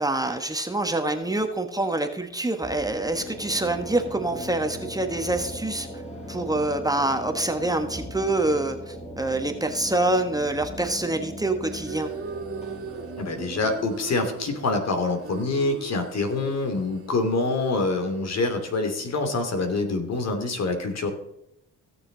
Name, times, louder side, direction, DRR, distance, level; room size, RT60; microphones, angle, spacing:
voice 1, 0.0-5.9 6.3-12.1, right 2 dB, 10° right, 5 dB, 1.4 m, -26 dB
sound 1, 2.6-16.3, equal, 20° left, 3.9 m, -39 dB
sound 2, 11.7-19.9, right 7 dB, 50° right, 1.7 m, -39 dB
voice 2, 13.2-21.1, left 3 dB, 60° left, 5 dB, 2.9 m, -26 dB
17.0 x 7.0 x 4.0 m, 0.80 s
cardioid pair, 90°, 30 cm